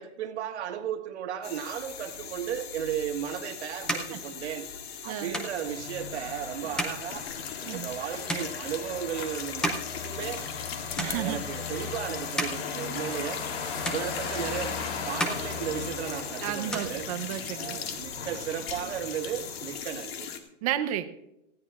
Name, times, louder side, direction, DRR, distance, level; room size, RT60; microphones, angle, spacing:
voice 1, 0.0-4.7 5.0-7.3 7.7-10.5 11.0-13.4 13.8-14.8 15.0-17.1 17.5-20.3, right 9 dB, 70° right, 7 dB, 1.8 m, -35 dB
sound 1, 1.4-20.4, left 7 dB, 55° left, 2.0 m, -39 dB
sound 2, 3.0-10.7 10.9-11.7 12.1-13.6 13.8-14.7 15.0-16.3 16.5-17.6, equal, ahead, 0.6 m, -36 dB
voice 2, 5.1-5.4 7.7-7.9 11.0-11.4 16.4-17.8 20.6-21.1, right 12 dB, 30° right, 9 dB, 0.8 m, -32 dB
sound 3, 5.6-19.8, left 5 dB, 80° left, 3.4 m, -38 dB
19.0 x 15.5 x 2.5 m, 0.88 s
supercardioid pair, 170°, 35 cm